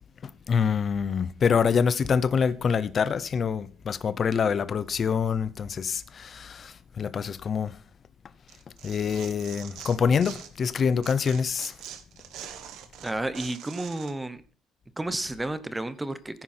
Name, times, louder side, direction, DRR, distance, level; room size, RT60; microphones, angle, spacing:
voice 1, 0.5-7.8 8.8-11.7, left 6 dB, 30° left, 0.7 m, -26 dB
Tearing, 8.5-10.7 11.0-14.1, right 10 dB, 65° right, 1.7 m, -43 dB
voice 2, 13.0-14.4 15.0-16.4, right 2 dB, 10° right, 0.9 m, -31 dB
15.0 x 10.0 x 4.4 m
cardioid pair, 180°, 0 cm